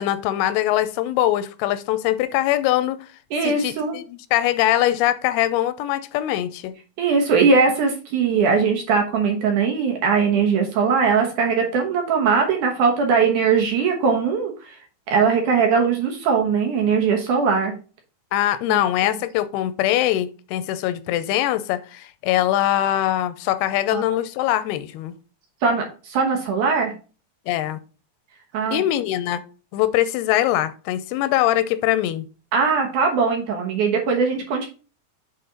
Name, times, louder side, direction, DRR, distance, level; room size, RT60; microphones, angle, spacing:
voice 1, 0.0-3.1 3.4-6.7 18.3-25.1 27.5-27.8 28.7-29.4 29.7-32.3, left 13 dB, 90° left, 2.6 m, -22 dB
voice 2, 3.3-4.0 7.0-14.8 15.1-17.7 18.7-18.8 23.9-24.0 25.6-26.9 28.5-28.8 32.5-34.7, right 5 dB, 65° right, 2.3 m, -20 dB
8.5 x 4.1 x 3.8 m
omnidirectional pair, 4.5 m